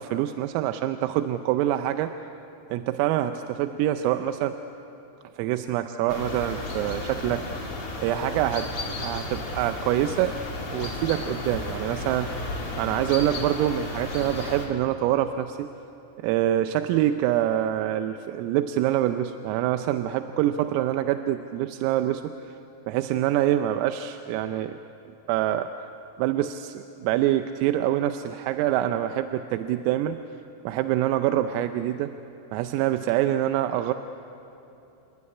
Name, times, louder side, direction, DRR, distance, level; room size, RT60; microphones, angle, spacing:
voice 1, 0.0-2.1 2.7-4.6 5.4-7.7 8.0-10.4 10.7-15.7 16.2-22.5 22.9-24.8 25.3-25.7 26.2-30.2 30.7-32.1 32.5-33.9, right 12 dB, 85° right, 8 dB, 3.4 m, -25 dB
sound 1, 6.1-14.7, left 2 dB, 30° left, 3.2 m, -33 dB
29.0 x 21.0 x 9.7 m, 3.0 s
omnidirectional pair, 5.9 m